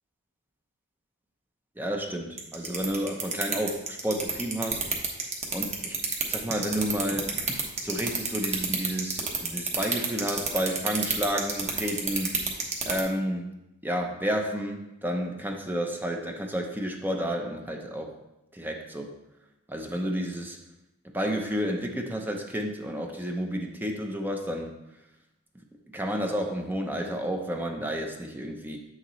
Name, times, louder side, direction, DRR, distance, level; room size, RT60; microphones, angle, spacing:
voice 1, 1.8-4.8 5.5-6.0 6.3-12.3 12.8-18.1 18.5-19.1 19.7-20.6 21.1-24.7 25.9-28.8, equal, 10° right, 2 dB, 0.6 m, -31 dB
sound 1, 2.4-13.0, right 5 dB, 30° right, 1.1 m, -27 dB
7.8 x 6.4 x 3.1 m, 0.89 s
head